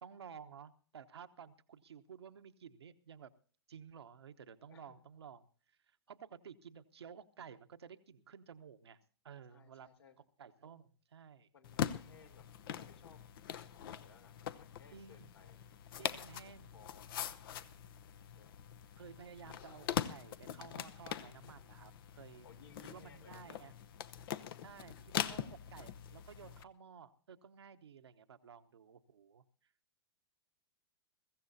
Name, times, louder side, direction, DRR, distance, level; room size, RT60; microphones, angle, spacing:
voice 1, 0.0-3.3 3.7-9.0 9.2-9.9 10.4-11.5 14.9-15.3 16.0-16.7 19.0-22.5 22.8-23.7 24.6-29.7, right 7 dB, 75° right, 8 dB, 1.0 m, -54 dB
voice 2, 9.5-10.2 11.5-12.4 12.7-13.2 13.9-15.6 15.9-16.2 16.7-17.9 18.2-18.6 22.4-23.6 24.2-24.5, left 5 dB, 75° left, 3 dB, 3.4 m, -62 dB
sound 1, 11.6-26.6, left 10 dB, 55° left, 0.8 m, -43 dB
22.0 x 15.0 x 2.7 m, 0.42 s
hypercardioid pair, 105°, 14 cm